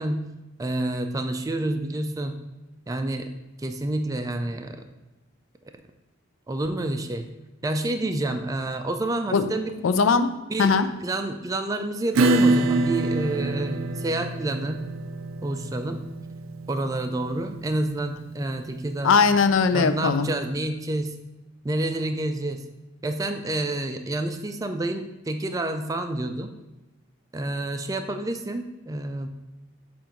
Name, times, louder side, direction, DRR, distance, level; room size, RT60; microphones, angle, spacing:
voice 1, 0.0-2.4 2.9-3.3 3.6-4.9 6.5-7.3 7.6-9.8 10.5-14.8 15.4-16.0 16.7-19.2 19.7-21.2 21.6-22.6 23.0-26.5 27.3-29.3, right 1 dB, 15° right, 6 dB, 0.3 m, -28 dB
voice 2, 9.8-10.3 10.6-10.9 19.0-20.3, left 5 dB, 75° left, 11 dB, 0.4 m, -19 dB
Acoustic guitar / Strum, 12.1-19.4, right 2 dB, 85° right, 0.4 m, -26 dB
7.3 x 2.5 x 5.2 m, 1.0 s
head